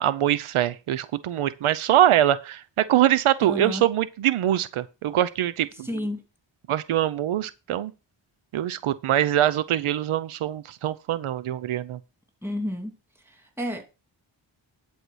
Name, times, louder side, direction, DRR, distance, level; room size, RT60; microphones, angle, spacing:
voice 1, 0.0-6.0 6.7-7.9 8.5-12.0, right 12 dB, 90° right, 0.7 m, -23 dB
voice 2, 3.4-3.8 5.8-6.2 12.4-12.9 13.6-13.9, equal, 5° right, 2.9 m, -30 dB
11.0 x 4.6 x 6.3 m
cardioid pair, 75°, 48 cm